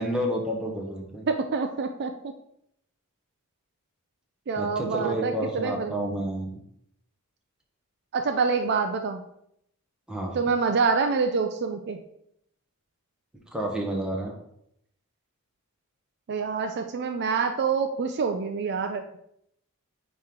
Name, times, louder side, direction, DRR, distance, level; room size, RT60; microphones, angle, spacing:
voice 1, 0.0-1.3 4.6-6.6 10.1-10.4 13.5-14.3, right 1 dB, 5° right, -1 dB, 1.0 m, -30 dB
voice 2, 1.3-2.1 4.5-6.2 8.1-9.2 10.3-12.0 16.3-19.0, right 5 dB, 50° right, 6 dB, 0.4 m, -26 dB
8.9 x 3.1 x 3.6 m, 0.74 s
head